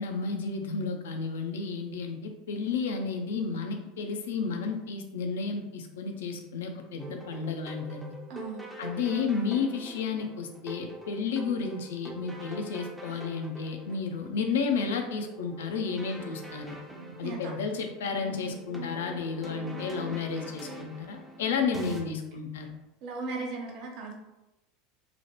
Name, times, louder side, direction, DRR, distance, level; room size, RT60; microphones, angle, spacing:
voice 1, 0.0-8.1 8.8-16.8 17.2-22.8, left 5 dB, 70° left, 4 dB, 0.4 m, -32 dB
sound 1, 7.0-22.0, right 1 dB, 5° right, 0.5 m, -44 dB
voice 2, 8.3-8.7 13.0-13.2 17.2-17.5 23.0-24.1, right 3 dB, 50° right, 0 dB, 0.7 m, -37 dB
2.9 x 2.0 x 2.9 m, 0.99 s
figure-of-eight pair, 75°, 0 cm